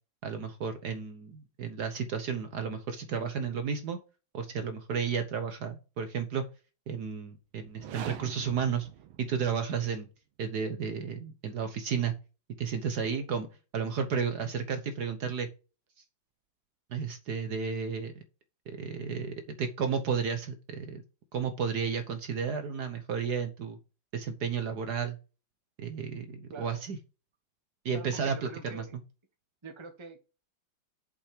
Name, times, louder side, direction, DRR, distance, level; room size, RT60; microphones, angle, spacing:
voice 1, 0.2-4.0 4.3-6.4 6.9-8.9 9.2-10.1 10.4-12.1 12.6-13.5 13.7-15.5 16.9-18.2 18.7-21.0 21.3-23.8 24.1-25.2 25.8-27.0 27.8-29.0, right 6 dB, 60° right, 8 dB, 1.3 m, -32 dB
sound 1, 7.7-9.8, right 10 dB, 90° right, 1.8 m, -44 dB
voice 2, 27.9-29.0 29.6-30.2, right 4 dB, 15° right, 6 dB, 1.1 m, -45 dB
7.1 x 5.6 x 5.0 m, 0.32 s
omnidirectional pair, 2.2 m